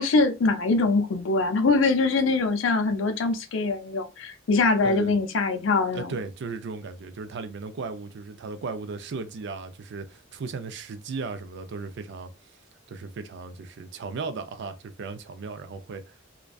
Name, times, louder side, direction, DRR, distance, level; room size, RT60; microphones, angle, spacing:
voice 1, 0.0-6.1, left 3 dB, 70° left, 0.5 m, -23 dB
voice 2, 4.8-5.1 5.9-12.6 12.9-16.2, right 4 dB, 60° right, 0.4 m, -36 dB
2.5 x 2.2 x 2.3 m
head